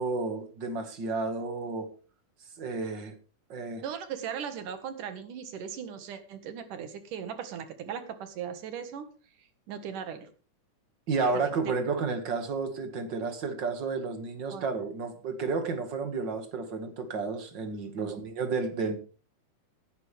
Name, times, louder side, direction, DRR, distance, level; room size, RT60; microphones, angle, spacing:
voice 1, 0.0-1.9 2.6-3.1 3.5-3.8 11.1-19.0, right 4 dB, 40° right, 2.3 m, -31 dB
voice 2, 3.8-9.1 9.4-10.3 11.3-11.5 14.5-14.7 18.0-18.2, right 8 dB, 90° right, 3.3 m, -38 dB
18.0 x 10.5 x 3.5 m
omnidirectional pair, 3.5 m